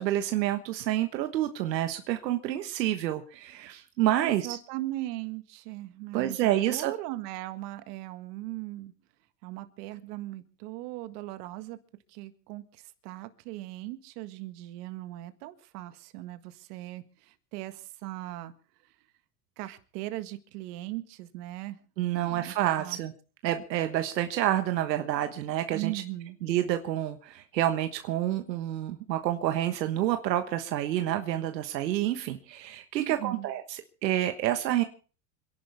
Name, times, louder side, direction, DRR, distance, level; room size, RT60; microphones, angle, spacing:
voice 1, 0.0-4.6 6.1-6.9 22.0-23.1 23.4-26.0 26.4-34.8, right 13 dB, 90° right, 7 dB, 1.4 m, -28 dB
voice 2, 4.2-8.9 9.4-11.8 12.1-18.5 19.6-21.8 22.1-23.0 25.7-26.4 33.0-33.5, right 17 dB, 70° right, 10 dB, 1.8 m, -39 dB
27.5 x 11.0 x 3.5 m, 0.39 s
supercardioid pair, 115°, 49 cm